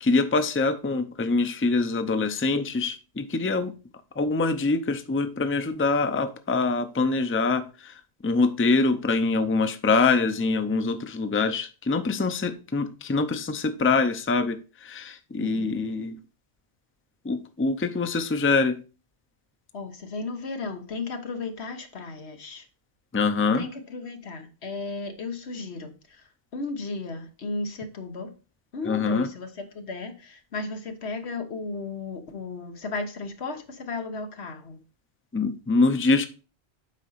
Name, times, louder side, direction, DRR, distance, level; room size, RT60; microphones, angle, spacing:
voice 1, 0.0-3.7 4.2-7.9 8.2-16.2 17.2-18.8 23.1-23.7 28.9-29.3 35.3-36.3, left 3 dB, 15° left, 9 dB, 0.5 m, -24 dB
voice 2, 15.4-15.8 19.7-22.7 23.5-28.3 28.7-34.8, left 3 dB, 90° left, 6 dB, 1.5 m, -35 dB
8.2 x 5.1 x 4.1 m, 0.35 s
omnidirectional pair, 1.1 m